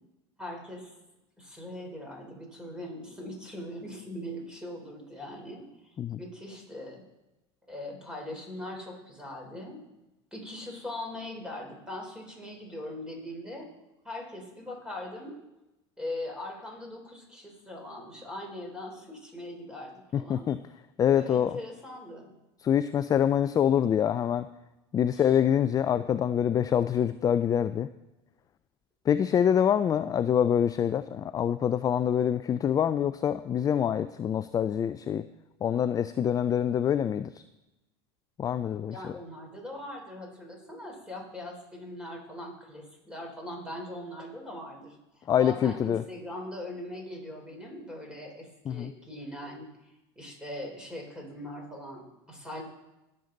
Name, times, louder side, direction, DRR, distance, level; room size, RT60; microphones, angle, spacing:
voice 1, 0.4-0.9 1.4-7.0 7.7-9.8 10.3-13.7 14.0-15.4 16.0-20.5 21.1-22.3 25.1-25.3 38.9-52.6, left 1 dB, 5° right, 0 dB, 3.7 m, -41 dB
voice 2, 20.1-20.6 21.0-21.6 22.6-24.5 24.9-27.9 29.1-35.2 35.6-37.3 38.4-39.1 45.3-46.0 48.7-48.9, left 9 dB, 25° left, 12 dB, 0.4 m, -25 dB
18.0 x 6.7 x 3.9 m, 0.96 s
hypercardioid pair, 95°, 14 cm